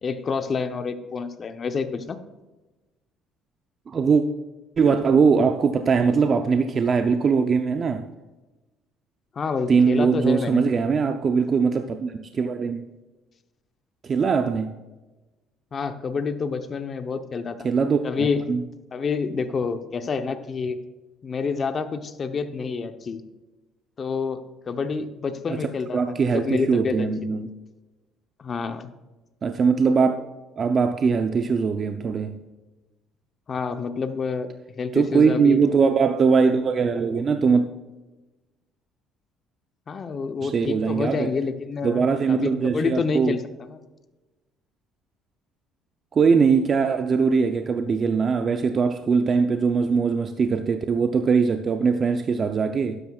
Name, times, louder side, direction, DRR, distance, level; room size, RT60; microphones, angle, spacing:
voice 1, 0.0-2.2 9.4-10.7 15.7-17.7 18.0-18.4 18.9-20.8 21.2-23.2 24.0-24.4 24.7-27.1 27.4-27.5 28.4-28.9 33.5-34.5 34.8-35.6 39.9-43.4 43.7-43.8, left 5 dB, 40° left, 9 dB, 0.8 m, -28 dB
voice 2, 3.9-4.2 4.8-8.0 9.7-12.8 14.0-14.7 17.6-18.6 25.5-25.6 25.9-27.5 29.4-30.2 30.6-32.4 34.9-37.7 40.4-41.3 41.8-43.4 46.1-53.0, right 5 dB, 40° right, 7 dB, 0.6 m, -21 dB
12.0 x 9.9 x 2.4 m, 1.1 s
supercardioid pair, 85°, 0 cm